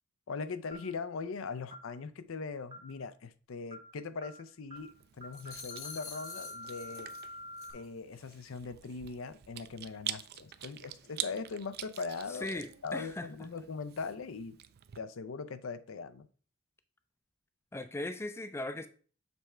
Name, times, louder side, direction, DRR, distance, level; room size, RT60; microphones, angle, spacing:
voice 1, 0.3-7.1 7.7-14.6 15.0-16.3, left 4 dB, 70° left, 0.5 m, -40 dB
sound 1, 0.7-1.0 1.7-1.9 2.7-3.0 3.7-3.9 4.2-4.4 4.7-4.9 5.2-7.7, left 1 dB, 25° right, 0.8 m, -47 dB
Chewing mastication, 4.8-15.0, right 11 dB, 50° right, 0.4 m, -46 dB
sound 2, 5.3-7.3 7.6-7.9, left 6 dB, 90° left, 2.2 m, -47 dB
voice 2, 12.4-13.3 17.7-18.9, left 2 dB, 15° left, 0.4 m, -38 dB
6.9 x 3.3 x 4.3 m
head